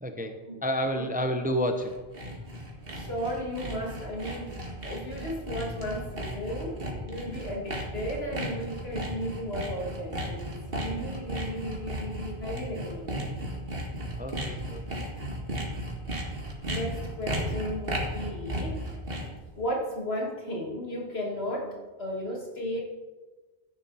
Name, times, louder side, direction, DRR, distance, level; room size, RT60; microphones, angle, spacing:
voice 1, 0.0-2.0 14.2-15.1, equal, 10° right, 6 dB, 0.8 m, -30 dB
Sawing, 1.6-19.4, right 1 dB, 60° right, 2.2 m, -35 dB
voice 2, 2.9-13.2 16.7-18.9 19.6-22.8, equal, 70° left, -1 dB, 2.5 m, -35 dB
13.5 x 10.5 x 4.2 m, 1.3 s
omnidirectional pair, 1.1 m